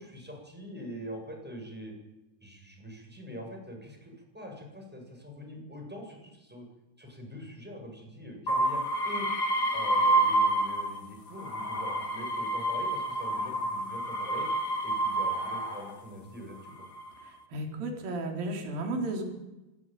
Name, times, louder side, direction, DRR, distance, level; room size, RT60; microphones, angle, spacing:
voice 1, 0.0-1.9 2.4-6.7 7.0-9.3 9.7-14.5 14.8-16.7, equal, ahead, 1 dB, 7.1 m, -43 dB
sound 1, 8.5-11.0 11.4-15.9 16.7-17.2, right 1 dB, 35° left, 1.7 m, -28 dB
voice 2, 17.2-19.2, right 2 dB, 50° right, 3 dB, 5.5 m, -34 dB
27.5 x 17.0 x 9.3 m, 1.0 s
omnidirectional pair, 5.5 m